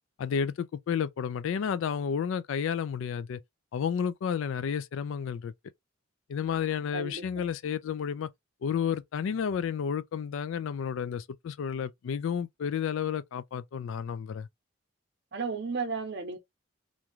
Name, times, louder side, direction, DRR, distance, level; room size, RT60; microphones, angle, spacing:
voice 1, 0.2-3.4 3.7-5.5 6.3-8.3 8.6-14.5, left 7 dB, 70° left, 0.3 m, -31 dB
voice 2, 6.9-7.4 15.3-16.4, right 4 dB, 55° right, 0.7 m, -34 dB
2.5 x 2.3 x 3.0 m
head